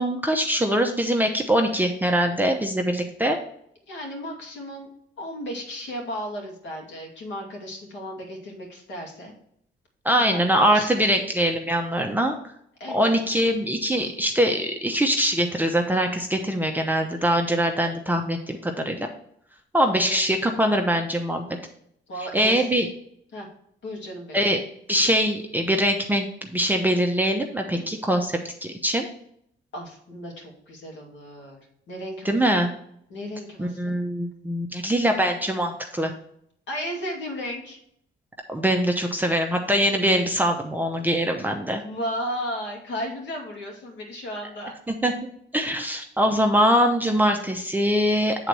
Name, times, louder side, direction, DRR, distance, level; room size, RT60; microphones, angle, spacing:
voice 1, 0.0-3.4 10.0-12.4 12.9-19.1 19.7-21.4 22.2-22.9 24.3-24.6 24.9-29.1 32.2-32.7 33.6-36.1 38.5-41.8 44.9-45.1 45.5-48.5, equal, 10° right, 3 dB, 0.7 m, -23 dB
voice 2, 3.9-4.9 5.2-9.3 10.1-11.2 12.8-13.3 19.9-20.2 22.1-22.7 23.3-23.5 23.8-24.4 27.7-27.9 29.7-32.7 33.1-34.0 36.7-37.8 41.7-44.7, equal, 65° left, -1 dB, 2.5 m, -35 dB
7.9 x 4.0 x 4.7 m, 0.70 s
cardioid pair, 90°, 20 cm